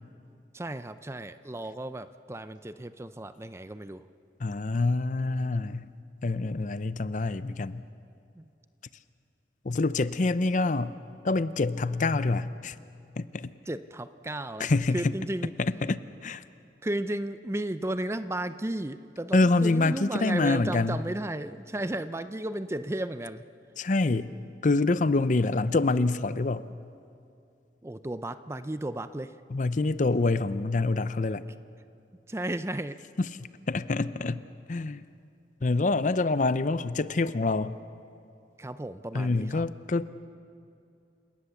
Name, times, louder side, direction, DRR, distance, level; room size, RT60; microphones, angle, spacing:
voice 1, 0.5-4.0 8.4-8.5 13.7-15.5 16.8-23.4 27.8-29.4 32.3-33.0 38.6-39.7, right 1 dB, 15° right, 12 dB, 0.5 m, -34 dB
voice 2, 4.4-5.9 6.2-7.8 9.6-11.0 11.2-12.7 13.2-13.5 14.6-15.1 15.6-16.4 19.3-21.0 23.8-24.3 24.6-26.6 29.5-31.4 33.2-33.3 33.7-34.4 34.7-35.0 35.6-37.8 39.1-40.1, left 3 dB, 45° left, 14 dB, 0.6 m, -26 dB
29.0 x 18.0 x 7.1 m, 2.5 s
head